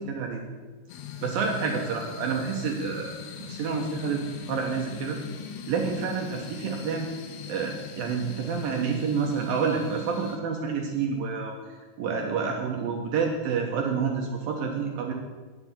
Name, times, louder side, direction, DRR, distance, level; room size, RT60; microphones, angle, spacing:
voice 1, 0.1-0.4 1.2-5.2 5.7-7.1 7.5-15.1, right 5 dB, 70° right, 1 dB, 2.3 m, -29 dB
sound 1, 0.9-10.4, left 7 dB, 85° left, 3.3 m, -41 dB
10.5 x 8.1 x 7.3 m, 1.3 s
omnidirectional pair, 5.1 m